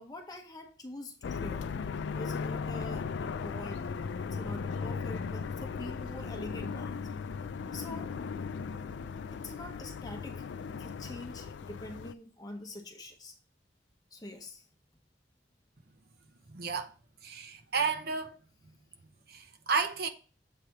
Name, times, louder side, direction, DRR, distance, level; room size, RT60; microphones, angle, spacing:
voice 1, 0.0-1.7 2.1-3.9 4.3-7.1 7.7-8.1 9.3-13.3 14.1-14.7, left 1 dB, 20° left, 0.9 m, -45 dB
sound 1, 1.2-12.1, left 5 dB, 80° left, 0.4 m, -37 dB
voice 2, 16.5-16.9 17.2-18.4 19.3-20.1, right 5 dB, 60° right, 0.8 m, -32 dB
7.6 x 3.2 x 5.8 m
head